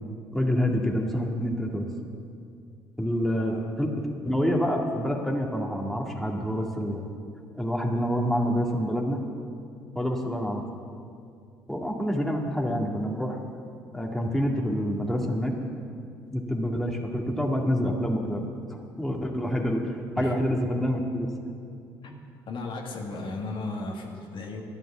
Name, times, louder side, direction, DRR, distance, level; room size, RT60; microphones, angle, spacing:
voice 1, 0.3-1.9 3.0-7.1 7.6-9.2 10.0-10.6 11.7-13.4 13.9-15.5 16.3-18.5 19.0-21.3, equal, ahead, -1 dB, 2.1 m, -27 dB
voice 2, 3.4-3.7 20.2-20.3 22.0-22.1 22.5-24.6, left 3 dB, 60° left, 0 dB, 1.8 m, -35 dB
12.0 x 9.2 x 7.4 m, 2.4 s
hypercardioid pair, 60°, 10 cm